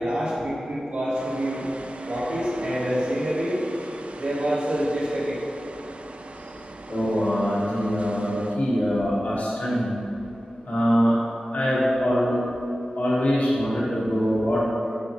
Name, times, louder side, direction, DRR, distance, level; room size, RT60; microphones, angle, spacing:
voice 1, 0.0-1.6 2.0-3.9 4.1-5.4, equal, 90° right, -12 dB, 1.1 m, -26 dB
sound 1, 1.1-8.6, right 2 dB, 45° right, 0.4 m, -40 dB
voice 2, 6.9-10.0 10.6-11.2 11.5-12.4 12.9-14.6, equal, 65° left, -8 dB, 1.2 m, -23 dB
6.2 x 5.6 x 2.9 m, 2.7 s
cardioid pair, 50°, 3 cm